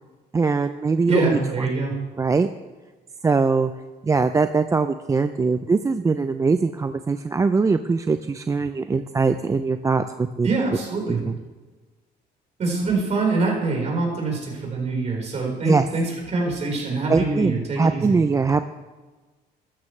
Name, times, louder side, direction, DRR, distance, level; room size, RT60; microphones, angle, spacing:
voice 1, 0.3-1.4 2.2-2.5 3.2-3.7 4.0-10.5 11.1-11.3 15.7-15.8 17.1-18.6, right 4 dB, 20° right, 9 dB, 0.4 m, -21 dB
voice 2, 1.1-1.9 10.4-11.2 12.6-18.2, right 3 dB, 40° right, -1 dB, 4.6 m, -24 dB
13.5 x 13.0 x 3.3 m, 1.3 s
cardioid pair, 110°, 17 cm